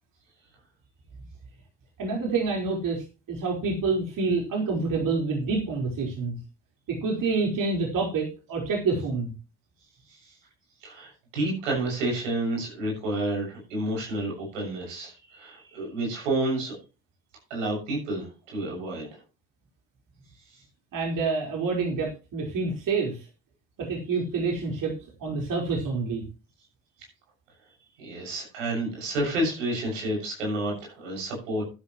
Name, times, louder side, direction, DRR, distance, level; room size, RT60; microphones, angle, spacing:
voice 1, 2.0-6.4 6.9-9.3 20.9-23.3 23.8-24.9 25.2-26.2, right 4 dB, 60° right, -1 dB, 4.8 m, -27 dB
voice 2, 10.8-16.7 17.5-19.1 28.0-31.7, right 1 dB, 90° right, -1 dB, 7.2 m, -30 dB
12.5 x 12.0 x 3.2 m, 0.31 s
hypercardioid pair, 55°, 37 cm